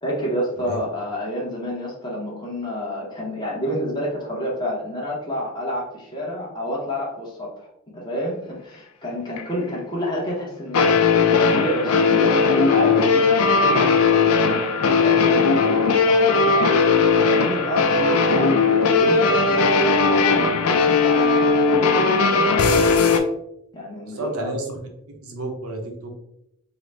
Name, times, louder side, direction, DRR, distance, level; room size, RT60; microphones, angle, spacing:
voice 1, 0.0-7.7 7.9-11.1 11.4-14.4 14.8-16.9 17.4-23.2 23.7-24.6, equal, 20° left, -5 dB, 0.7 m, -29 dB
sound 1, 9.4-9.5 10.7-23.2, left 4 dB, 80° left, 0.4 m, -18 dB
voice 2, 24.1-24.8 25.2-26.2, right 1 dB, 75° right, 2 dB, 0.8 m, -31 dB
3.7 x 2.0 x 3.2 m, 0.78 s
head